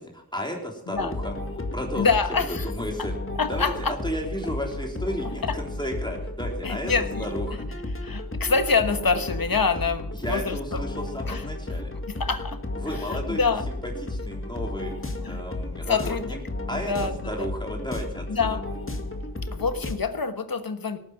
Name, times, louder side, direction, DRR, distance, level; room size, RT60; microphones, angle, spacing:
voice 1, 0.1-1.3 1.7-3.2 3.5-6.9 7.2-7.7 10.1-11.9 12.8-16.4 16.7-18.3, equal, 10° left, 0 dB, 3.5 m, -33 dB
sound 1, 1.0-19.9, left 2 dB, 35° left, 2.0 m, -33 dB
voice 2, 2.0-2.7 3.0-3.1 3.4-3.9 6.6-7.3 8.0-10.8 11.3-11.4 12.1-12.6 13.1-13.6 15.2-15.4 15.9-16.4 16.7-17.5 18.3-18.6 19.5-21.0, left 5 dB, 70° left, 10 dB, 1.4 m, -26 dB
18.0 x 9.3 x 5.8 m, 0.75 s
wide cardioid pair, 60°, 36 cm